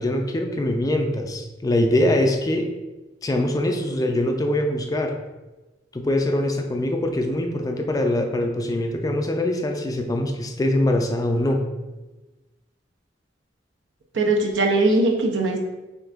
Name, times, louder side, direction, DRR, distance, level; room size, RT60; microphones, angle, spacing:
voice 1, 0.0-2.7 3.2-5.1 5.9-11.6, left 1 dB, 20° left, 4 dB, 0.4 m, -23 dB
voice 2, 14.1-15.6, right 2 dB, 80° right, 2 dB, 0.7 m, -20 dB
6.4 x 2.6 x 2.5 m, 1.1 s
head